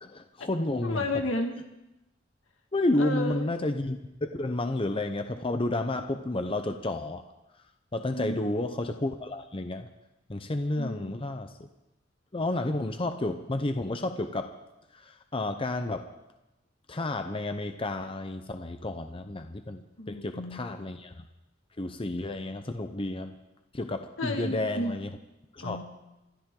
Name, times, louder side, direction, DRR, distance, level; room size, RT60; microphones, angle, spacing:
voice 1, 0.0-1.0 2.7-7.2 7.9-9.9 10.3-11.7 12.3-14.5 14.9-16.1 16.9-21.2 21.8-23.3 23.7-25.1 25.5-25.8, left 2 dB, 25° left, 7 dB, 0.7 m, -31 dB
voice 2, 0.8-1.6 3.0-3.5 8.1-8.5 10.8-11.1 20.0-20.7 24.2-25.0 25.6-25.8, left 1 dB, 75° left, 4 dB, 2.0 m, -32 dB
27.0 x 13.5 x 3.8 m, 0.94 s
head